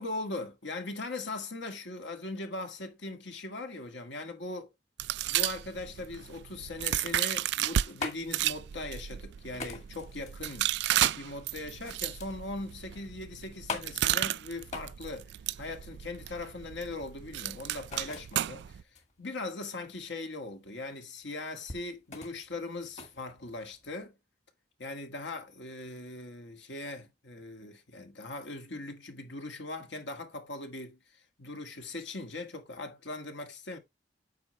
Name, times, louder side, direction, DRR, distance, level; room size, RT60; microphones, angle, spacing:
voice 1, 0.0-4.7 5.2-10.7 11.1-15.3 15.6-18.8 19.2-24.2 24.8-33.8, left 2 dB, 75° left, 1.8 m, -40 dB
sound 1, 5.0-7.9 8.3-18.8, right 12 dB, 70° right, 0.3 m, -33 dB
sound 2, 7.5-24.0, left 4 dB, 40° left, 1.8 m, -44 dB
8.6 x 5.6 x 3.1 m
head